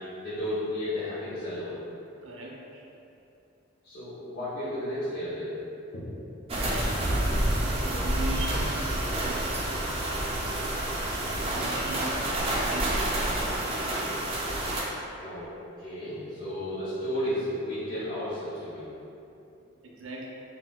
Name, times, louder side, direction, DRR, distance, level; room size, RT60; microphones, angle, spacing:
voice 1, 0.0-1.8 3.8-5.5 5.9-6.0 15.2-15.5 15.8-18.9, left 1 dB, 55° left, -14 dB, 0.8 m, -33 dB
voice 2, 2.2-2.8 6.6-7.0 7.8-9.5 10.0-10.5 11.4-13.0 19.8-20.3, right 2 dB, 85° right, -2 dB, 0.5 m, -39 dB
sound 1, 6.5-14.8, right 1 dB, 30° right, 0.3 m, -28 dB
4.1 x 2.1 x 2.2 m, 2.8 s
head